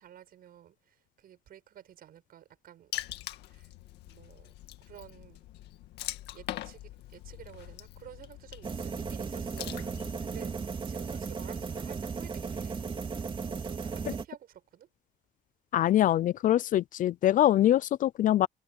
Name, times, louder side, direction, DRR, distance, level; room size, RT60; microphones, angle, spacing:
voice 1, 0.0-2.9 3.5-3.7 4.1-5.4 6.3-12.8 13.4-14.9, right 11 dB, 60° right, 7.3 m, -52 dB
Water / Splash splatter, 2.9-10.4, left 14 dB, 80° left, 2.0 m, -43 dB
sound 1, 8.6-14.3, right 5 dB, 30° right, 2.8 m, -36 dB
voice 2, 15.7-18.5, left 12 dB, 50° left, 0.4 m, -24 dB
cardioid pair, 110°, 17 cm